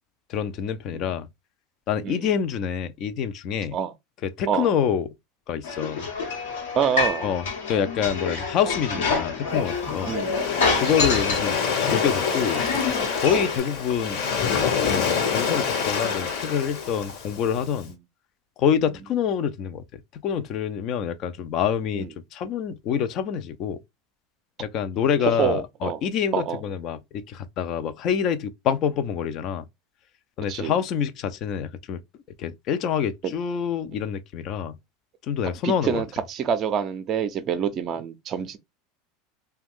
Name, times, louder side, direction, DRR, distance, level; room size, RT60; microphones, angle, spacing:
voice 1, 0.3-1.3 1.9-3.8 4.2-5.1 5.5-6.1 7.2-7.4 7.7-10.1 10.8-12.7 13.2-17.9 18.6-23.8 24.6-29.6 30.4-32.0 32.4-34.8 35.3-36.0, left 8 dB, 50° left, 0.4 m, -26 dB
sound 1, 5.6-13.6, left 4 dB, 85° left, 1.0 m, -27 dB
voice 2, 6.7-7.3 10.1-10.4 10.9-11.0 13.3-13.5 15.1-15.2 22.0-22.1 25.3-26.0 26.3-26.6 30.5-30.8 35.6-38.6, right 7 dB, 40° right, 0.4 m, -26 dB
Waves surf, 9.5-17.8, left 6 dB, 65° left, 1.2 m, -27 dB
2.4 x 2.2 x 3.5 m
hypercardioid pair, 100°, 0 cm